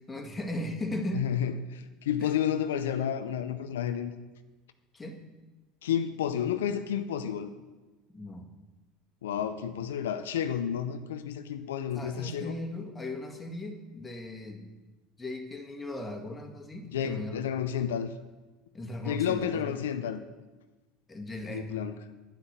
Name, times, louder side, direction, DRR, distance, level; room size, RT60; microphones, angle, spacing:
voice 1, 0.1-1.3 2.2-2.3 4.9-5.2 8.1-8.5 11.9-14.7 15.2-17.4 18.7-19.9 21.1-21.8, left 1 dB, 15° left, 3 dB, 1.9 m, -37 dB
voice 2, 1.1-4.1 5.8-7.5 9.2-12.6 16.9-18.1 19.0-20.2 21.5-21.9, left 9 dB, 90° left, 9 dB, 0.6 m, -31 dB
10.5 x 5.8 x 8.1 m, 1.2 s
hypercardioid pair, 90°, 0 cm